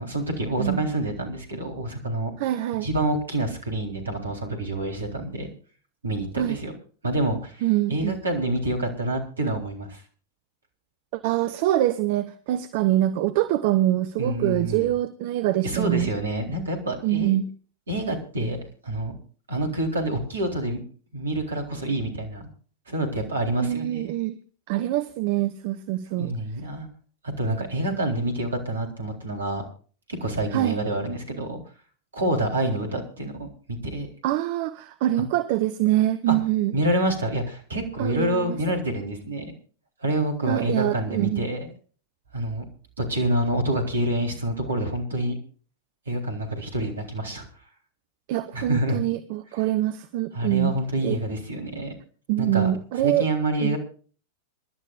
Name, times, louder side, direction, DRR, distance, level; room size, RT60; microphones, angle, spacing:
voice 1, 0.0-2.3 2.8-5.5 6.0-6.7 7.0-7.6 7.9-10.0 14.2-14.9 15.6-17.3 17.9-19.2 19.5-20.8 21.1-22.5 22.9-24.0 26.2-26.9 27.4-29.6 30.2-31.6 32.1-33.5 33.8-34.1 36.3-36.4 36.7-39.5 40.0-41.7 42.3-42.6 43.0-45.4 46.1-47.5 48.5-49.0 50.3-52.0 52.4-52.7 53.0-53.8, right 1 dB, 70° right, 3 dB, 3.9 m, -27 dB
voice 2, 2.4-2.9 6.4-6.6 7.6-8.2 11.1-16.1 17.0-17.5 23.6-24.4 24.7-26.3 30.5-30.8 34.2-36.7 38.0-38.6 40.4-41.5 48.3-50.7 51.0-51.2 52.3-53.3 53.6-53.8, right 14 dB, 50° right, 12 dB, 0.9 m, -24 dB
27.0 x 12.0 x 2.5 m, 0.41 s
figure-of-eight pair, 90°, 0 cm